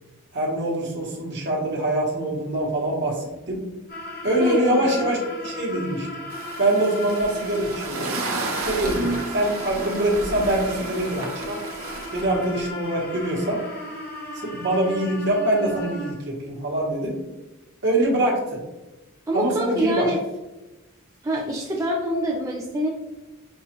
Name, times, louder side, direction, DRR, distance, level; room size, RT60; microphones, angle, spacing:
voice 1, 0.3-3.6 4.2-6.1 6.6-8.1 8.6-11.6 12.1-13.6 14.3-17.2 17.8-18.4 19.3-20.1, right 1 dB, 50° right, -2 dB, 1.1 m, -24 dB
sound 1, 3.9-16.1, left 1 dB, 45° left, 0.7 m, -36 dB
voice 2, 4.4-5.2 8.8-9.2 19.3-20.2 21.2-22.9, right 1 dB, 15° right, -2 dB, 0.3 m, -26 dB
sound 2, 6.3-12.7, right 3 dB, 65° right, 0.7 m, -33 dB
5.4 x 2.3 x 2.9 m, 1.1 s
head